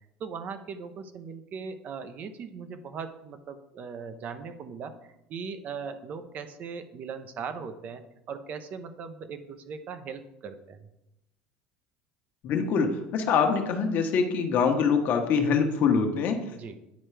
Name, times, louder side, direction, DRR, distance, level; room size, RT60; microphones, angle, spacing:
voice 1, 0.2-4.9 5.3-8.0 8.3-10.8 16.5-16.8, right 6 dB, 45° right, 9 dB, 0.7 m, -39 dB
voice 2, 12.4-16.4, left 6 dB, 55° left, 4 dB, 1.0 m, -24 dB
9.4 x 4.4 x 3.3 m, 0.89 s
supercardioid pair, 105°, 4 cm